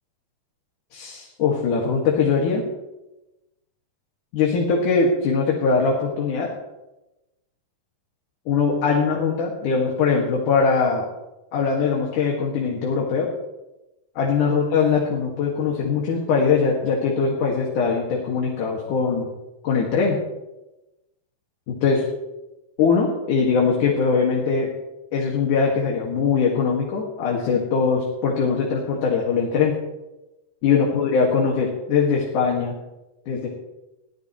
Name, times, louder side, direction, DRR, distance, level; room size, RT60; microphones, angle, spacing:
voice 1, 0.9-2.6 4.3-6.5 8.5-11.1 11.5-13.3 14.2-19.3 19.6-20.2 21.7-22.1 22.8-24.7 25.1-29.7 30.6-32.7 33.3-33.5, left 5 dB, 70° left, -2 dB, 3.5 m, -21 dB
21.5 x 16.0 x 3.2 m, 1.0 s
omnidirectional pair, 3.7 m